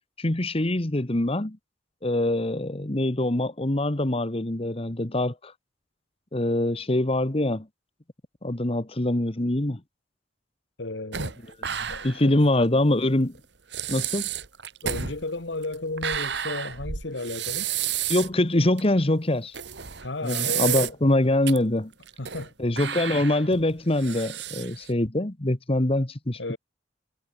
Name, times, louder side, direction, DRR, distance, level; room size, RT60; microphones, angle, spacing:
voice 1, 0.2-1.6 2.0-5.5 6.3-7.7 8.4-9.8 12.0-13.4 13.9-14.3 18.1-19.6 20.2-21.9 22.6-26.6, left 1 dB, 30° left, 1.4 m, -24 dB
voice 2, 10.8-11.4 11.9-12.5 14.8-17.7 20.0-20.9 22.2-22.5 26.4-26.6, left 2 dB, 70° left, 1.8 m, -33 dB
sound 1, 11.1-12.3 12.6-12.7 13.3-13.4 13.7-18.4 18.8-18.9 19.5-21.1 21.5-21.6 22.0-22.5 22.8-24.9, right 9 dB, 65° right, 1.8 m, -31 dB
head